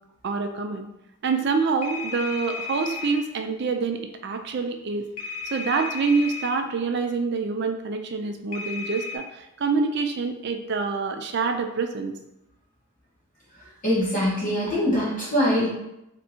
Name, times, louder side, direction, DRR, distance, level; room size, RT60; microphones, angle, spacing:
voice 1, 0.2-0.9 1.2-5.0 5.5-12.1, right 4 dB, 50° right, 6 dB, 0.4 m, -26 dB
sound 1, 1.8-3.2 5.2-6.5 8.5-9.2, left 4 dB, 80° left, 0.6 m, -34 dB
voice 2, 13.8-15.7, equal, 35° left, -8 dB, 1.4 m, -23 dB
3.4 x 2.7 x 4.2 m, 0.87 s
head